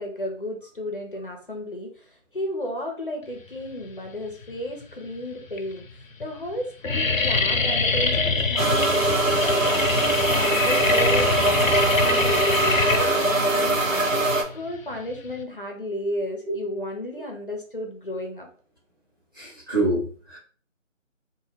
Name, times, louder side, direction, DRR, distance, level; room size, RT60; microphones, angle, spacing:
voice 1, 0.0-5.8 6.2-18.5, left 1 dB, 45° left, 2 dB, 0.6 m, -33 dB
sound 1, 4.2-4.8 5.5-5.6 5.9-6.2 6.5-15.4, left 4 dB, 90° left, 0.7 m, -25 dB
sound 2, 8.6-14.4, right 2 dB, 85° right, 1.1 m, -22 dB
voice 2, 19.4-20.4, right 2 dB, 15° right, -8 dB, 0.8 m, -26 dB
2.7 x 2.4 x 3.1 m, 0.43 s
figure-of-eight pair, 165°, 39 cm